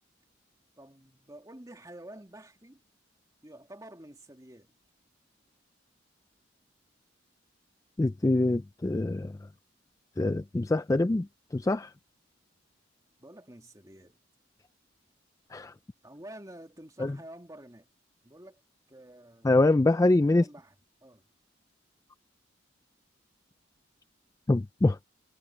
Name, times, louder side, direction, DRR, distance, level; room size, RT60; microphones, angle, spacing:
voice 1, 0.8-2.8 3.4-4.8 13.2-14.2 16.0-17.9 18.2-18.6 18.9-19.5 20.3-20.7 21.0-21.2, right 1 dB, 20° right, 2.4 m, -49 dB
voice 2, 8.0-9.4 10.2-11.3 11.5-11.9 15.5-15.7 17.0-17.2 19.4-20.5 24.5-25.0, left 2 dB, 15° left, 0.3 m, -24 dB
head